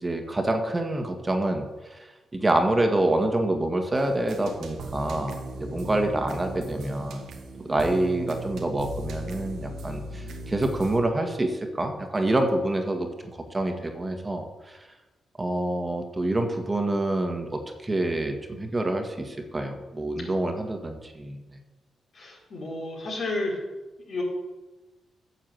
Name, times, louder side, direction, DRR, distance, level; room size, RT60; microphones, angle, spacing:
voice 1, 0.0-7.3 7.6-14.8 15.4-21.4, right 1 dB, 25° right, 4 dB, 1.9 m, -27 dB
sound 1, 3.9-11.0, right 2 dB, 75° right, 1.5 m, -38 dB
voice 2, 5.6-6.0 20.2-20.3 22.1-23.6 24.1-24.2, left 2 dB, 60° left, -3 dB, 4.6 m, -32 dB
10.0 x 6.6 x 7.9 m, 1.1 s
supercardioid pair, 50°, 0 cm